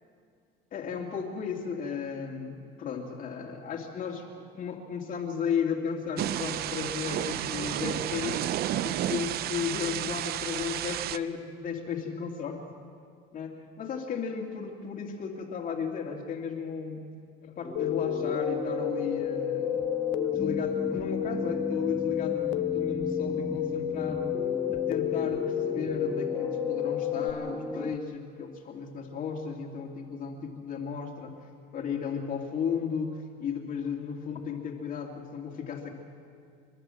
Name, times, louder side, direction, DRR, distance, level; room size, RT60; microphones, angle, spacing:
voice 1, 0.7-8.5 8.8-12.6 13.3-17.0 17.4-19.9 20.3-24.3 24.7-31.3 31.7-35.9, left 6 dB, 45° left, 0 dB, 2.5 m, -34 dB
Thunder / Rain, 6.2-11.2, right 12 dB, 50° right, 0.6 m, -31 dB
sound 1, 17.6-28.0, equal, ahead, 0.5 m, -36 dB
sound 2, 17.8-27.3, left 13 dB, 80° left, 0.9 m, -31 dB
29.5 x 11.5 x 7.8 m, 2.2 s
cardioid pair, 130°, 20 cm